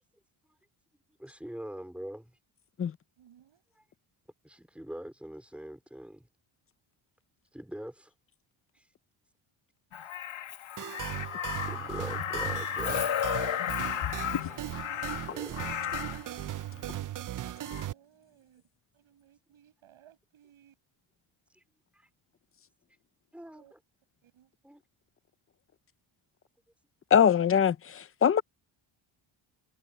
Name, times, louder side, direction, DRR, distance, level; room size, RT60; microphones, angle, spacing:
voice 1, 1.2-2.4 4.4-6.3 7.5-8.1 8.7-8.9 11.7-13.2 15.3-15.6 21.5-21.6 21.9-22.1 23.3-23.8 24.6-24.8, equal, ahead, 4.1 m, -43 dB
voice 2, 3.2-3.6 17.3-18.6 18.9-20.8 23.5-23.7 24.2-24.5, right 11 dB, 70° right, 7.6 m, -61 dB
Crow, 9.9-16.3 17.7-17.9, left 10 dB, 65° left, 2.1 m, -33 dB
sound 1, 10.8-17.9, right 12 dB, 40° right, 0.5 m, -38 dB
voice 3, 27.1-27.8 28.2-28.4, left 8 dB, 30° left, 0.5 m, -21 dB
cardioid pair, 155°, 50 cm